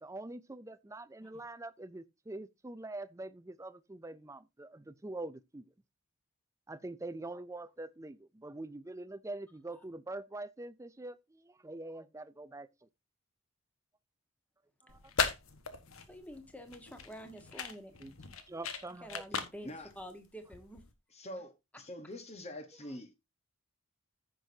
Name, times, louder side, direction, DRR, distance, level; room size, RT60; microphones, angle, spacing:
voice 1, 0.0-5.6 6.7-12.9 14.8-15.0 18.0-18.1 18.5-19.2, right 2 dB, 15° right, 0.4 m, -44 dB
sound 1, 14.9-20.9, left 5 dB, 75° left, 1.4 m, -38 dB
voice 2, 16.1-17.9 19.0-20.8, equal, 5° left, 1.5 m, -48 dB
voice 3, 21.1-23.2, left 1 dB, 30° left, 1.1 m, -45 dB
15.0 x 6.1 x 2.7 m
head